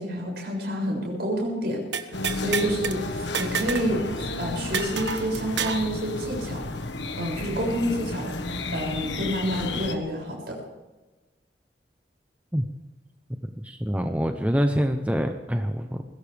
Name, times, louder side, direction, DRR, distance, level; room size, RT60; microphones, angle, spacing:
voice 1, 0.0-6.6 7.2-8.3 8.7-10.6, equal, 60° right, 0 dB, 6.8 m, -29 dB
sound 1, 1.9-3.0 3.3-3.9 4.2-4.3 4.7-5.9, right 6 dB, 80° right, 1.2 m, -29 dB
sound 2, 2.1-10.0, left 2 dB, 80° left, 1.4 m, -32 dB
voice 2, 13.6-16.0, equal, 10° right, 5 dB, 0.8 m, -25 dB
21.0 x 17.0 x 3.5 m, 1.2 s
head